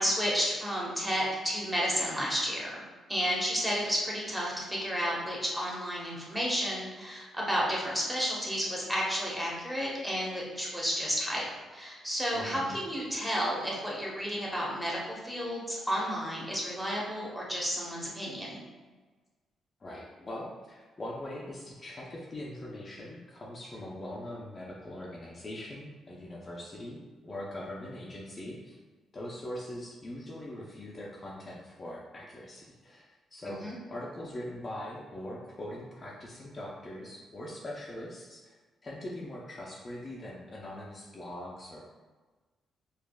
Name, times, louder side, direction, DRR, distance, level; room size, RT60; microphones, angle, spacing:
voice 1, 0.0-11.4 11.7-18.6 33.4-33.7, equal, 5° right, -5 dB, 0.9 m, -32 dB
voice 2, 12.3-12.8 19.8-28.8 29.1-38.6 38.8-41.8, left 1 dB, 30° left, -4 dB, 0.5 m, -42 dB
4.7 x 2.4 x 2.2 m, 1.3 s
cardioid pair, 110°, 0 cm